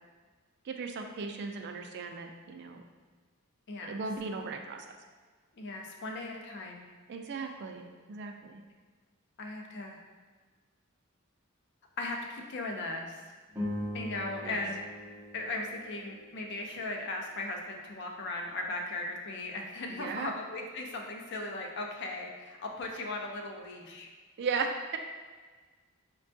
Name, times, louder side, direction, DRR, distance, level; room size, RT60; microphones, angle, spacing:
voice 1, 0.6-2.8 3.9-4.8 7.1-8.6 14.4-14.6 20.0-20.4 24.4-25.0, right 4 dB, 55° right, 4 dB, 0.3 m, -36 dB
voice 2, 3.7-4.0 5.5-6.9 9.4-10.0 12.0-13.2 13.9-14.8 15.3-24.1, left 2 dB, 55° left, 1 dB, 0.5 m, -37 dB
sound 1, 13.5-18.0, left 1 dB, 10° right, 0.6 m, -42 dB
5.2 x 2.2 x 2.6 m, 1.4 s
head